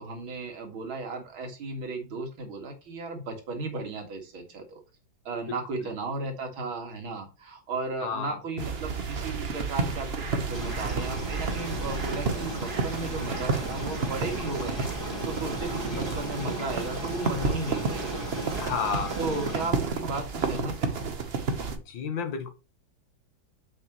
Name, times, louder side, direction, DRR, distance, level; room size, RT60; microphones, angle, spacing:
voice 1, 0.0-4.8 5.2-18.6 19.2-21.0, right 3 dB, 85° right, 3 dB, 2.8 m, -35 dB
voice 2, 8.0-8.4 15.9-16.2 18.6-19.2 21.9-22.5, left 6 dB, 70° left, 7 dB, 1.9 m, -32 dB
sound 1, 8.6-21.8, right 4 dB, 40° right, 0.9 m, -31 dB
sound 2, 10.5-19.7, equal, 10° right, 2.9 m, -37 dB
7.5 x 6.6 x 3.0 m, 0.30 s
omnidirectional pair, 2.2 m